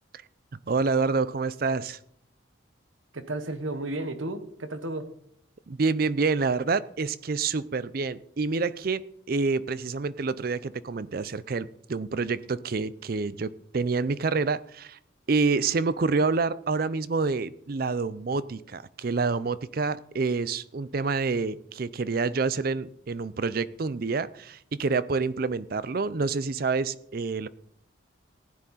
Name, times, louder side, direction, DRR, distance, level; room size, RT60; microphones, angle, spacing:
voice 1, 0.7-2.0 5.7-15.0 15.3-27.5, right 4 dB, 50° right, 17 dB, 0.5 m, -27 dB
voice 2, 3.1-5.1, right 2 dB, 85° right, 10 dB, 1.2 m, -33 dB
15.5 x 9.9 x 4.1 m, 0.69 s
head